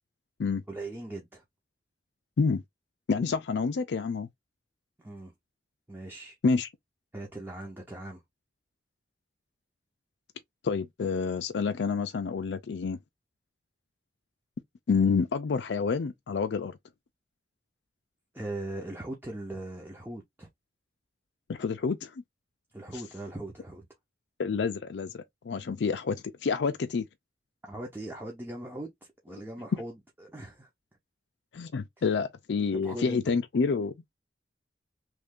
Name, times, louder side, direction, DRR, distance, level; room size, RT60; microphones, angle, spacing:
voice 1, 0.7-1.4 5.0-5.3 5.9-6.4 7.1-8.2 18.3-20.5 22.7-23.9 27.6-30.7 32.7-33.4, right 1 dB, 10° right, 0.7 m, -40 dB
voice 2, 3.1-4.3 6.4-6.7 10.6-13.0 14.9-16.8 21.5-22.1 24.4-26.2 26.4-27.0 31.5-33.9, left 5 dB, 80° left, 0.4 m, -28 dB
3.1 x 2.5 x 3.6 m
head